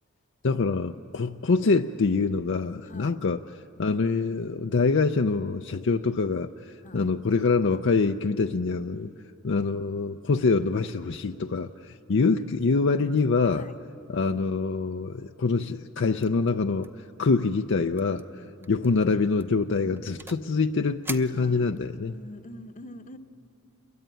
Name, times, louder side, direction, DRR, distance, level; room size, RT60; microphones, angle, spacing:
voice 1, 0.4-9.1 9.4-13.7 14.1-16.9 17.2-22.1, left 4 dB, 60° left, 6 dB, 0.5 m, -25 dB
voice 2, 8.9-9.3 13.5-13.7 18.3-18.7 21.3-21.7 22.0-23.2, left 1 dB, 35° left, 9 dB, 0.9 m, -45 dB
sound 1, 16.2-16.5 16.8-17.1 17.3-17.4 18.0-18.2 18.6-18.9 19.4-20.5 21.0-22.0, right 2 dB, 10° right, 0.7 m, -42 dB
28.5 x 22.5 x 9.0 m, 2.8 s
head